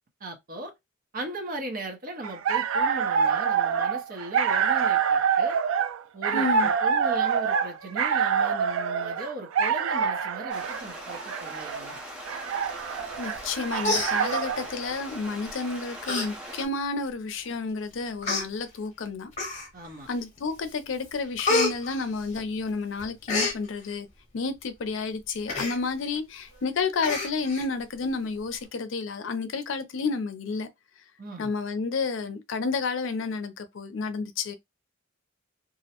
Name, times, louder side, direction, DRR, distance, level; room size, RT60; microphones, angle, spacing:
voice 1, 0.2-0.7 1.1-5.6 6.1-12.0 19.7-20.1 31.2-31.5, right 2 dB, 45° right, 0.7 m, -38 dB
sound 1, 2.2-14.7, right 6 dB, 75° right, 0.3 m, -26 dB
voice 2, 6.3-6.7 13.2-19.3 20.1-24.1 24.3-30.7 31.4-34.5, left 4 dB, 70° left, 0.5 m, -30 dB
sound 2, 10.5-16.7, right 1 dB, 5° right, 0.6 m, -41 dB
Human voice, 13.4-13.5 13.8-14.7 15.5-15.6 16.0-16.3 16.7-16.8 17.5-17.6 18.2-18.5 19.3-19.9 20.4-20.7 21.0-22.7 23.0-23.6 25.5-25.8 26.2-26.3 26.5-26.6 27.0-27.7 28.0-28.1, left 3 dB, 35° left, 0.8 m, -29 dB
2.4 x 2.0 x 2.8 m
head